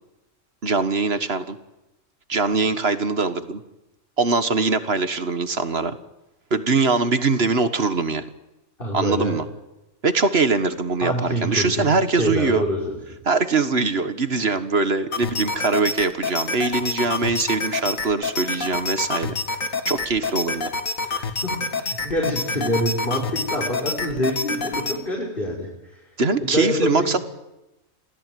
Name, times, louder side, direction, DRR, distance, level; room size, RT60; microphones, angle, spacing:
voice 1, 0.6-1.6 2.3-3.6 4.2-6.0 6.5-8.3 8.9-9.4 10.0-12.6 13.3-19.4 19.9-20.7 26.2-27.2, right 4 dB, 50° right, 11 dB, 1.8 m, -22 dB
voice 2, 8.8-9.4 11.0-13.0 21.0-26.1 26.4-27.2, equal, 40° left, -3 dB, 5.7 m, -26 dB
sound 1, 15.1-25.0, left 3 dB, 90° left, 2.4 m, -28 dB
28.0 x 17.0 x 9.3 m, 0.95 s
omnidirectional pair, 1.4 m